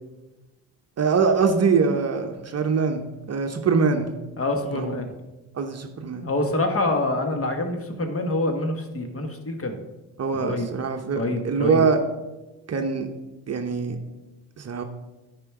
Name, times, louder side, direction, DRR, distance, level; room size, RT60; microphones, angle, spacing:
voice 1, 1.0-4.1 4.7-4.9 5.5-6.3 10.2-12.0 12.7-13.1 13.5-14.0 14.6-14.8, right 5 dB, 35° right, 5 dB, 0.9 m, -23 dB
voice 2, 4.4-5.1 6.2-9.8 10.3-10.7 11.1-11.8, left 2 dB, 30° left, 5 dB, 1.5 m, -26 dB
9.7 x 5.1 x 4.8 m, 1.1 s
supercardioid pair, 70°, 45 cm